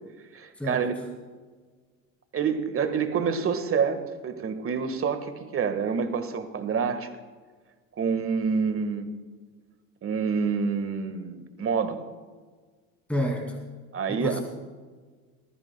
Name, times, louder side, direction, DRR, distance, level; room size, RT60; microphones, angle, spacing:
voice 1, 0.3-0.9 2.3-7.1 8.0-9.1 10.0-12.0 13.9-14.4, right 6 dB, 30° right, 9 dB, 1.5 m, -27 dB
voice 2, 13.1-13.6 14.1-14.4, equal, 5° left, 1 dB, 2.3 m, -29 dB
19.5 x 14.5 x 2.2 m, 1.5 s
hypercardioid pair, 85°, 43 cm